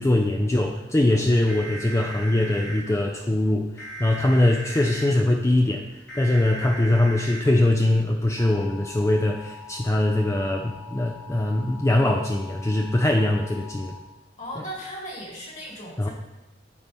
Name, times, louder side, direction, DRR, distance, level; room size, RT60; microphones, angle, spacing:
voice 1, 0.0-14.0 16.0-16.1, left 1 dB, 15° left, 1 dB, 0.4 m, -22 dB
sound 1, 1.5-2.8 3.8-5.1 6.1-7.4 8.4-14.0, equal, 90° left, 1.8 m, -40 dB
voice 2, 14.4-16.1, equal, 45° left, -3 dB, 2.5 m, -37 dB
13.0 x 4.4 x 3.5 m, 0.97 s
head